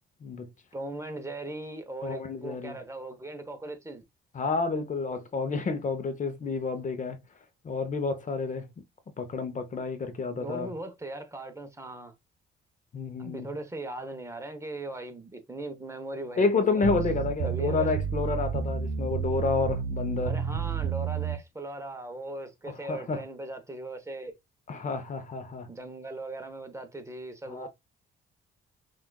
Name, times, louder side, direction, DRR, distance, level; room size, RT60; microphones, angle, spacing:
voice 1, 0.7-4.0 10.3-12.1 13.2-17.0 17.4-17.9 20.2-24.3 25.7-27.7, right 2 dB, 15° right, 0.9 m, -39 dB
voice 2, 2.0-2.8 4.3-7.2 7.6-8.7 9.2-10.7 12.9-13.5 16.4-20.4 22.7-23.2 24.7-25.7 27.5-27.7, left 4 dB, 40° left, 0.8 m, -30 dB
sound 1, 16.8-21.4, right 8 dB, 80° right, 0.7 m, -30 dB
5.7 x 2.5 x 2.3 m
cardioid pair, 90°, 20 cm